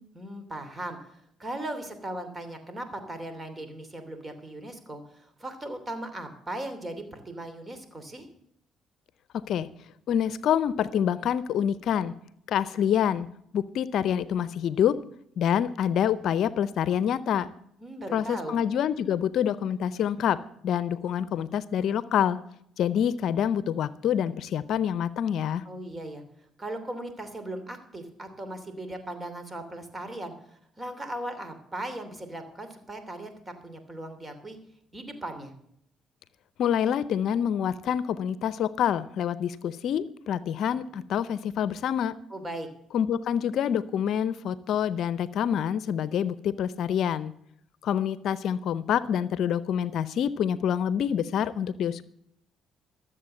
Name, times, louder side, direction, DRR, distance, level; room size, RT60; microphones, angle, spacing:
voice 1, 0.1-8.3 17.8-18.6 25.6-26.2 26.6-34.6 34.9-35.5 42.3-42.7, right 1 dB, 25° right, 8 dB, 2.9 m, -38 dB
voice 2, 9.3-9.7 10.1-12.1 12.5-13.3 13.5-15.0 15.4-17.5 18.1-20.4 20.6-22.4 22.8-25.6 36.6-42.2 42.9-47.3 47.8-52.0, left 9 dB, 70° left, 17 dB, 0.6 m, -26 dB
13.0 x 7.7 x 7.7 m, 0.71 s
supercardioid pair, 65°, 0 cm